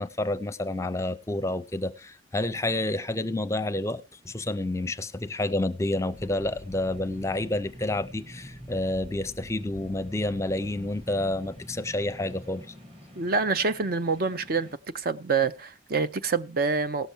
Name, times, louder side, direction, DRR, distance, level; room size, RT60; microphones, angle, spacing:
voice 1, 0.0-12.7, left 1 dB, 15° left, 0.5 m, -29 dB
sound 1, 6.1-14.7, equal, 30° right, 1.9 m, -46 dB
voice 2, 13.2-14.7 14.9-17.1, right 4 dB, 55° right, 0.6 m, -26 dB
17.0 x 6.9 x 4.5 m
head